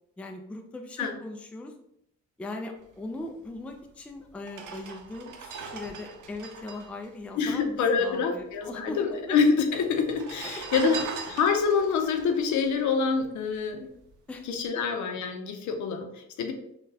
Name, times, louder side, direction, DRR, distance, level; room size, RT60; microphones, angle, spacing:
voice 1, 0.2-1.7 2.4-9.0 9.3-9.4 10.4-10.6 14.3-14.5 14.7-14.8, left 2 dB, 5° left, 3 dB, 0.3 m, -39 dB
sound 1, 3.7-3.8 4.4-8.1 8.3-8.4 8.6-9.3 10.0-13.5 13.9-14.2, right 5 dB, 80° right, 0.6 m, -40 dB
voice 2, 7.4-11.0 11.3-13.9 14.5-16.5, left 5 dB, 75° left, 5 dB, 0.6 m, -26 dB
3.8 x 2.2 x 2.7 m, 0.77 s
cardioid pair, 90°, 30 cm